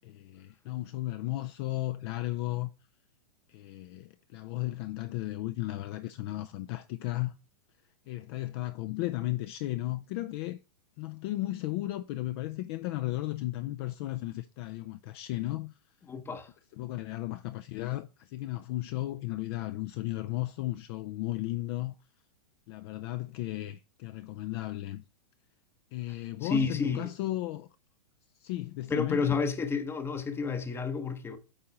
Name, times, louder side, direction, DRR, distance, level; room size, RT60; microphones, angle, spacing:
voice 1, 0.0-2.7 3.5-7.4 8.1-10.6 11.0-15.7 16.8-21.9 22.7-25.0 25.9-27.7 28.4-29.2, left 17 dB, 40° left, 0.4 m, -35 dB
voice 2, 16.1-16.5 26.1-27.1 28.9-31.4, left 5 dB, 10° left, 0.7 m, -30 dB
8.8 x 3.8 x 4.1 m
hypercardioid pair, 130°, 20 cm